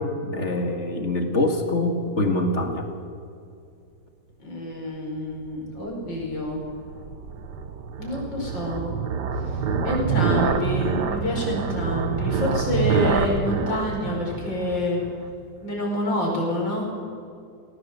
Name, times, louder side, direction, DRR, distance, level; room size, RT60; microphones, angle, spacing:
voice 1, 0.0-2.9, left 2 dB, 40° left, 4 dB, 2.4 m, -24 dB
voice 2, 4.4-6.6 8.0-8.9 9.3-15.0 15.6-16.9, left 1 dB, 85° left, -2 dB, 6.0 m, -28 dB
sound 1, 5.7-15.3, right 6 dB, 65° right, 1.8 m, -26 dB
20.0 x 17.5 x 8.1 m, 2.4 s
omnidirectional pair, 2.0 m